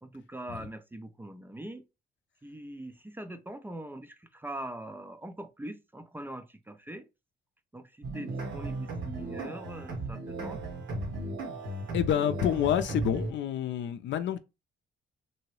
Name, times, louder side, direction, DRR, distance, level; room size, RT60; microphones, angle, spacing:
voice 1, 0.0-1.8 2.4-7.0 7.7-7.8 8.1-10.6, right 1 dB, 10° right, 0.4 m, -42 dB
sound 1, 8.0-13.3, right 2 dB, 75° right, 1.3 m, -35 dB
voice 2, 11.9-14.4, left 10 dB, 70° left, 0.5 m, -28 dB
2.9 x 2.7 x 3.1 m
cardioid pair, 90°, 20 cm